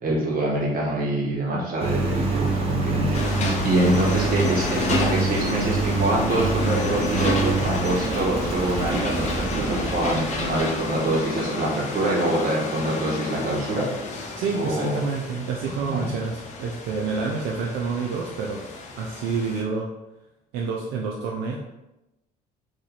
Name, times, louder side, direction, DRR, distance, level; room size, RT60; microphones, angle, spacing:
voice 1, 0.0-13.9 14.2-14.3 14.5-15.0 15.8-16.1, right 1 dB, 55° right, -4 dB, 1.4 m, -25 dB
Engine, 1.8-11.2, right 3 dB, 35° right, 0.9 m, -26 dB
sound 1, 3.1-19.6, left 3 dB, 45° left, 0.7 m, -31 dB
voice 2, 14.4-18.6 19.0-19.9 20.5-21.6, right 4 dB, 80° right, -1 dB, 0.5 m, -28 dB
3.2 x 2.7 x 4.0 m, 0.95 s
cardioid pair, 110°, 17 cm